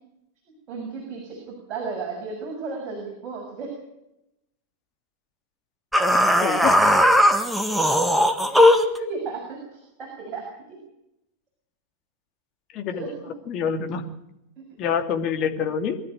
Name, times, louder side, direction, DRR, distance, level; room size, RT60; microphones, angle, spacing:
voice 1, 0.7-3.7 6.0-6.1 7.4-7.8 8.5-10.4 12.9-13.3 14.6-14.7, right 4 dB, 30° right, -1 dB, 6.8 m, -34 dB
sound 1, 5.9-9.0, left 1 dB, ahead, 1.6 m, -18 dB
voice 2, 6.4-6.8 12.7-13.1 13.5-14.1 14.8-16.0, left 7 dB, 35° left, 5 dB, 2.7 m, -26 dB
23.5 x 13.0 x 9.2 m, 0.85 s
figure-of-eight pair, 90°, 0 cm